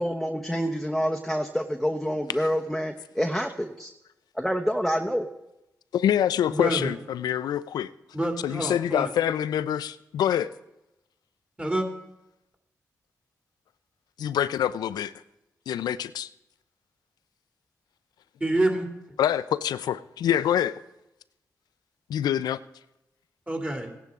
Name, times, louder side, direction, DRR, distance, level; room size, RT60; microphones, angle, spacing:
voice 1, 0.0-3.9 4.4-5.3, equal, ahead, 1.0 m, -27 dB
voice 2, 5.9-7.9 8.4-10.5 14.2-15.1 15.7-16.3 19.2-20.8 22.1-22.6, left 10 dB, 90° left, 0.4 m, -26 dB
voice 3, 6.5-6.9 8.1-9.1 11.6-11.9 18.4-18.9 23.5-23.9, right 1 dB, 20° right, 2.5 m, -27 dB
16.0 x 10.5 x 3.6 m
cardioid pair, 50°, 7 cm